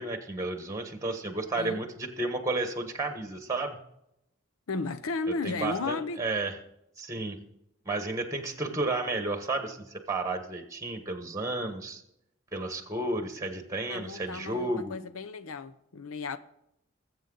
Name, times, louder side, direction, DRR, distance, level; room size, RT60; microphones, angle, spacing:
voice 1, 0.0-3.8 5.4-6.5 7.0-7.4 7.8-12.0 12.5-14.9, right 2 dB, 15° right, 1.3 m, -32 dB
voice 2, 4.7-6.2 13.9-16.4, left 3 dB, 85° left, 0.7 m, -34 dB
20.0 x 8.0 x 3.9 m
head